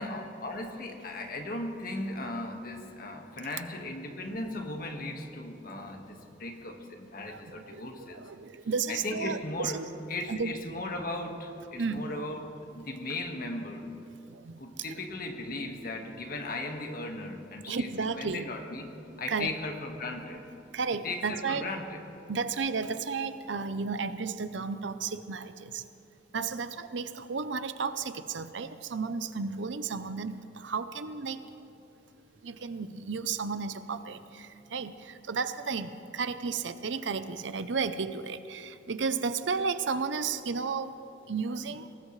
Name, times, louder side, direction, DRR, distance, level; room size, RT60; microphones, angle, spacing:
voice 1, 0.0-8.2 8.9-9.8 10.1-12.4 12.7-13.8 14.6-17.9 18.2-18.9 19.2-20.5 21.0-22.0, left 2 dB, 50° left, 3 dB, 1.6 m, -37 dB
voice 2, 7.3-9.9 10.3-10.5 11.8-12.0 14.3-14.6 17.7-18.5 19.3-19.5 20.7-21.7 22.3-25.8 26.3-31.4 32.4-40.9 41.3-41.9, right 5 dB, 75° right, 12 dB, 0.7 m, -33 dB
23.0 x 19.0 x 3.3 m, 2.7 s
head